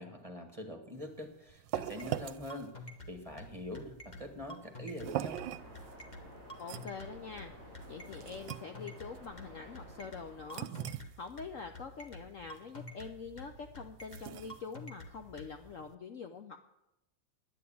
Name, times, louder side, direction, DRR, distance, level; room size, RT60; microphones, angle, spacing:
voice 1, 0.0-2.7 3.1-5.4, left 1 dB, 20° right, 4 dB, 1.4 m, -44 dB
sound 1, 1.0-15.9, right 13 dB, 75° right, 1.3 m, -44 dB
sound 2, 1.5-15.5, left 1 dB, 25° left, 1.2 m, -48 dB
Waves surf, 5.4-10.7, equal, 90° left, 6.4 m, -53 dB
voice 2, 6.6-7.5 7.9-10.7 11.2-16.6, left 5 dB, 55° left, 6 dB, 0.9 m, -45 dB
10.5 x 9.7 x 8.5 m, 0.87 s
omnidirectional pair, 2.0 m